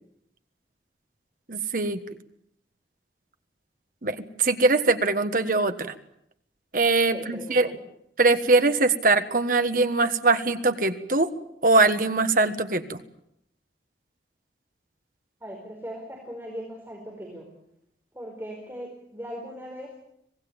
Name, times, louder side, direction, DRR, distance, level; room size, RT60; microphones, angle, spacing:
voice 1, 1.5-2.0 4.0-5.9 6.7-7.7 8.2-11.3 11.6-13.0, right 3 dB, 50° right, 9 dB, 1.5 m, -22 dB
voice 2, 7.1-7.8 15.4-17.5 18.1-20.0, equal, 15° right, -1 dB, 4.9 m, -39 dB
26.0 x 18.5 x 8.9 m, 0.76 s
head